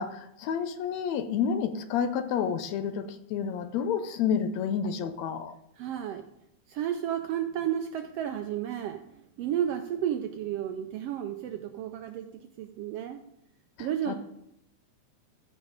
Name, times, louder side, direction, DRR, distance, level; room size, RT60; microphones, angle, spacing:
voice 1, 0.0-5.5 13.8-14.2, left 7 dB, 75° left, 9 dB, 1.9 m, -30 dB
voice 2, 5.8-6.2 6.7-9.0 9.4-12.3 12.6-13.2 13.8-14.1, right 10 dB, 75° right, 6 dB, 1.4 m, -32 dB
14.5 x 5.2 x 5.0 m, 0.78 s
omnidirectional pair, 3.3 m